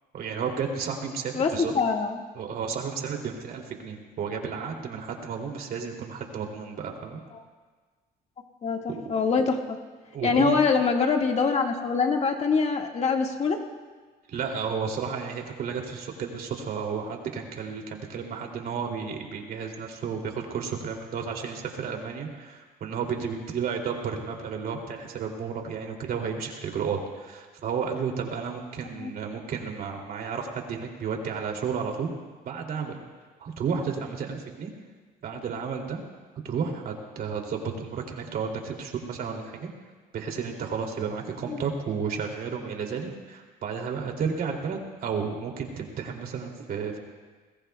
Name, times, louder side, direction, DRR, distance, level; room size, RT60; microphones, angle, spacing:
voice 1, 0.1-1.7 2.3-7.2 8.9-9.2 10.1-10.6 14.3-32.1 32.4-33.0 33.4-34.7 35.2-36.0 36.4-39.7 40.1-47.0, right 6 dB, 60° right, 2 dB, 2.8 m, -32 dB
voice 2, 1.4-2.1 8.6-9.8 10.2-13.6 29.0-29.1 41.5-41.6, left 5 dB, 40° left, 2 dB, 1.8 m, -24 dB
27.0 x 20.5 x 2.3 m, 1.4 s
cardioid pair, 110°, 17 cm